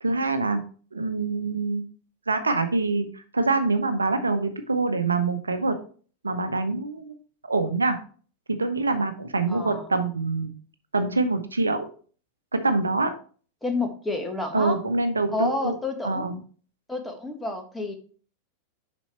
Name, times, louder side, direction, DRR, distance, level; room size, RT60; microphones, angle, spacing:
voice 1, 0.0-0.6 0.9-1.8 2.3-5.8 6.2-7.1 7.5-8.0 8.5-10.5 10.9-11.9 12.5-13.1 14.5-15.8 16.0-16.4, right 3 dB, 75° right, 8 dB, 0.8 m, -25 dB
voice 2, 9.5-9.9 13.6-14.7 15.3-16.3 16.9-17.9, left 2 dB, 5° left, 4 dB, 1.4 m, -30 dB
7.1 x 5.3 x 4.4 m, 0.42 s
figure-of-eight pair, 90°, 0 cm